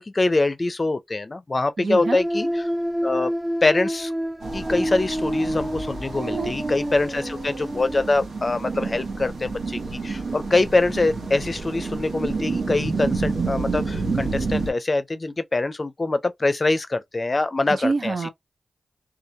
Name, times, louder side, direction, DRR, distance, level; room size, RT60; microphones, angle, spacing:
voice 1, 0.0-2.5 3.0-3.3 3.6-4.1 4.5-18.1, left 2 dB, 45° left, 0.5 m, -24 dB
voice 2, 1.8-2.2 6.1-6.5 17.7-18.3, right 4 dB, 70° right, 0.5 m, -26 dB
sound 1, 2.0-8.1, equal, 25° right, 0.7 m, -28 dB
sound 2, 4.4-14.7, right 4 dB, 90° right, 0.8 m, -29 dB
2.3 x 2.1 x 2.7 m
cardioid pair, 50°, 0 cm